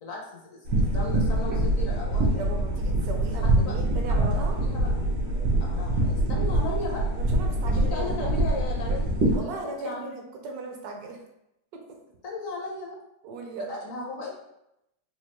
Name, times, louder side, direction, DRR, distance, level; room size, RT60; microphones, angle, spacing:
voice 1, 0.0-2.5 3.3-3.8 4.1-5.0 5.6-7.1 7.7-10.2 12.2-13.0 13.6-14.3, left 3 dB, 60° left, -2 dB, 1.0 m, -37 dB
sound 1, 0.6-9.4, right 1 dB, 90° right, 1.6 m, -24 dB
voice 2, 2.4-4.6 7.2-8.3 9.3-11.2 11.7-12.0 13.2-13.7, right 3 dB, 70° right, 2 dB, 1.1 m, -37 dB
4.4 x 2.4 x 2.9 m, 0.84 s
omnidirectional pair, 1.8 m